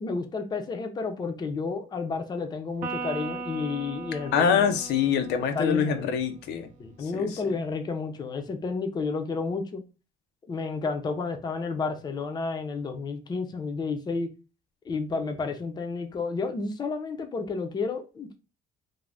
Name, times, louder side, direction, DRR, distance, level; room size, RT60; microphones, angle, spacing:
voice 1, 0.0-4.7 5.5-6.1 6.8-9.8 10.5-14.3 14.8-18.4, left 4 dB, 25° left, 0.5 m, -31 dB
Electric guitar, 2.8-6.4, right 4 dB, 50° right, 0.5 m, -38 dB
voice 2, 4.3-6.7 7.1-7.3, left 7 dB, 85° left, 0.5 m, -24 dB
2.5 x 2.0 x 3.2 m
cardioid pair, 110°, 17 cm